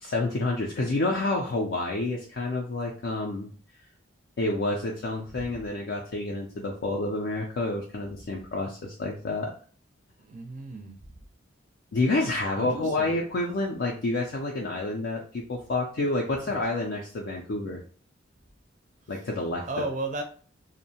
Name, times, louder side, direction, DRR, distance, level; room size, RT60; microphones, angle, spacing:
voice 1, 0.0-3.5 4.4-9.5 11.9-17.8 19.1-19.7, left 2 dB, 60° left, -1 dB, 0.4 m, -29 dB
voice 2, 10.2-11.2 12.6-13.1 19.7-20.2, right 2 dB, 35° right, 5 dB, 0.4 m, -34 dB
2.6 x 2.0 x 2.7 m, 0.43 s
head